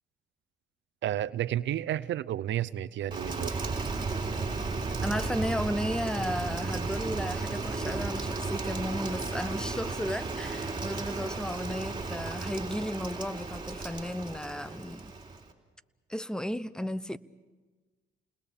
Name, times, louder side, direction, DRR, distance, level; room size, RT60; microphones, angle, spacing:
voice 1, 1.0-3.6, right 12 dB, 70° right, 0.7 m, -31 dB
Rain, 3.1-15.5, right 3 dB, 25° right, 3.3 m, -34 dB
voice 2, 5.0-15.2 16.1-17.2, equal, 5° left, 0.7 m, -34 dB
29.5 x 20.5 x 7.0 m
cardioid pair, 90°, 20 cm